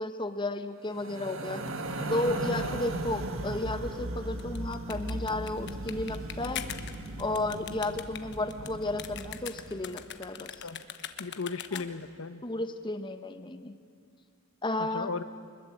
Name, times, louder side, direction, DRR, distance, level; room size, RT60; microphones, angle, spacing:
voice 1, 0.0-1.6 2.1-6.7 7.2-10.5 11.7-11.8 12.4-13.7 14.6-15.2, left 2 dB, 25° left, 9 dB, 1.0 m, -33 dB
sound 1, 0.9-10.2, right 1 dB, 70° right, 1.6 m, -37 dB
sound 2, 4.3-12.1, left 9 dB, 60° left, 1.2 m, -42 dB
voice 2, 11.2-12.4 14.8-15.2, left 4 dB, 75° left, 12 dB, 0.9 m, -36 dB
24.0 x 21.0 x 8.6 m, 2.3 s
head